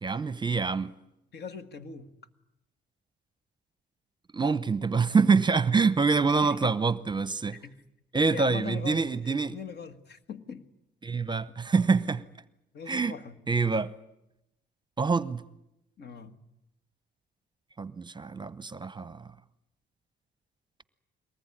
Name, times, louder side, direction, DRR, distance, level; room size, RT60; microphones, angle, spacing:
voice 1, 0.0-0.9 4.3-7.6 8.1-9.5 11.0-12.2 12.9-13.1 13.5-13.9 15.0-15.4 17.8-19.2, right 4 dB, 20° right, 0.8 m, -26 dB
voice 2, 1.3-2.1 6.2-6.6 7.5-7.8 8.3-10.7 12.7-13.4 16.0-16.4, left 6 dB, 55° left, 1.7 m, -41 dB
23.0 x 19.5 x 9.9 m
cardioid pair, 90°, 20 cm